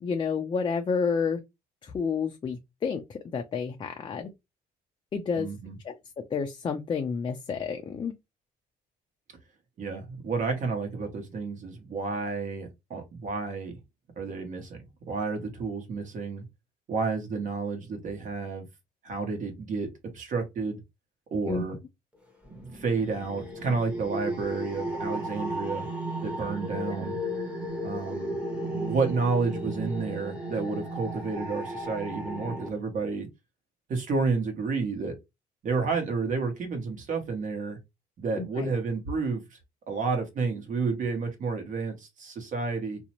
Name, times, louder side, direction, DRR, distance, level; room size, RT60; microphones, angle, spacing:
voice 1, 0.0-1.4 1.8-4.3 5.1-5.5 5.8-5.9 6.3-8.1 21.5-21.6 26.9-27.0 38.4-38.7, left 5 dB, 30° left, 0.4 m, -30 dB
voice 2, 5.4-5.8 9.8-13.7 14.2-14.8 15.1-16.4 16.9-18.6 19.0-19.9 20.1-20.8 21.3-21.8 22.7-25.9 26.2-27.2 27.8-33.3 33.9-35.1 35.6-37.8 38.2-39.4 39.9-43.0, right 4 dB, 50° right, 1.0 m, -30 dB
sound 1, 22.5-32.7, right 1 dB, 5° right, 0.9 m, -34 dB
2.5 x 2.0 x 2.9 m
cardioid pair, 110°, 17 cm